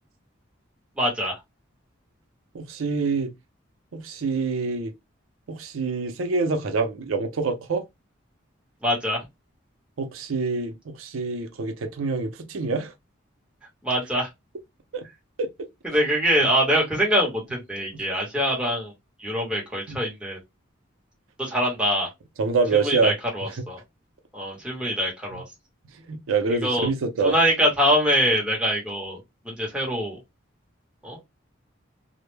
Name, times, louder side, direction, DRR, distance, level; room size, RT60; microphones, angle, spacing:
voice 1, 1.0-1.4 8.8-9.2 13.8-14.3 15.8-18.9 19.2-20.4 21.4-22.1 22.7-23.8 24.3-25.4 26.6-26.9 27.2-29.2 29.4-30.2 31.0-31.2, equal, 5° right, 0.9 m, -24 dB
voice 2, 2.5-3.3 3.9-4.9 5.5-7.8 10.0-12.9 14.9-15.0 15.4-15.5 19.9-20.0 22.4-23.1 26.1-27.3, right 4 dB, 90° right, 0.5 m, -26 dB
2.1 x 2.1 x 3.1 m
head